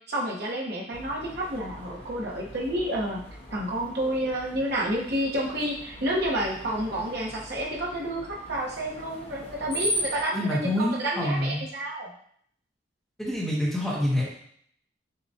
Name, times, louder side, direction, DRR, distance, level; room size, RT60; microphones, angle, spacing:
voice 1, 0.1-3.2 3.5-12.1, right 1 dB, 60° right, -3 dB, 1.0 m, -30 dB
Screech, 0.9-10.2, equal, 35° left, 1.0 m, -38 dB
voice 2, 10.3-11.6 13.2-14.2, left 1 dB, ahead, -5 dB, 0.8 m, -26 dB
6.7 x 2.3 x 2.7 m, 0.64 s
head